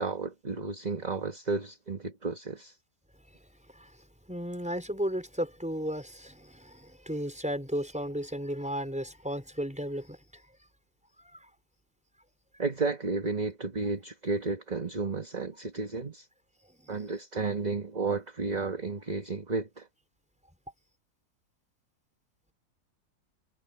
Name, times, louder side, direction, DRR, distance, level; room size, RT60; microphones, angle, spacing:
voice 1, 0.0-2.7 12.6-16.3 16.9-19.9, right 4 dB, 25° right, 1.6 m, -32 dB
voice 2, 4.3-10.2 11.3-11.4 16.8-16.9, equal, 5° right, 5.2 m, -34 dB
omnidirectional pair, 2.0 m